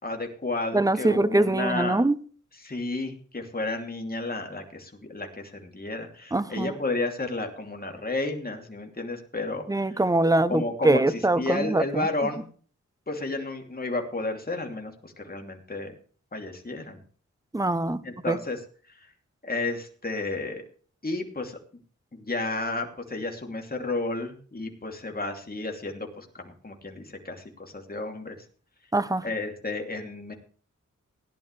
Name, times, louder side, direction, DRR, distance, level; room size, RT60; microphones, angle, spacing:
voice 1, 0.0-2.0 2.5-10.0 10.5-12.5 13.1-15.9 16.3-17.0 18.0-18.6 18.9-19.1 19.4-20.6 21.0-21.6 22.1-28.4 29.2-30.3, left 2 dB, 30° left, 2.8 m, -32 dB
voice 2, 0.7-2.2 6.3-6.7 9.7-12.1 17.5-18.0 18.3-18.4 28.9-29.2, right 2 dB, 10° right, 0.8 m, -23 dB
17.0 x 11.0 x 3.3 m
wide cardioid pair, 85°, 31 cm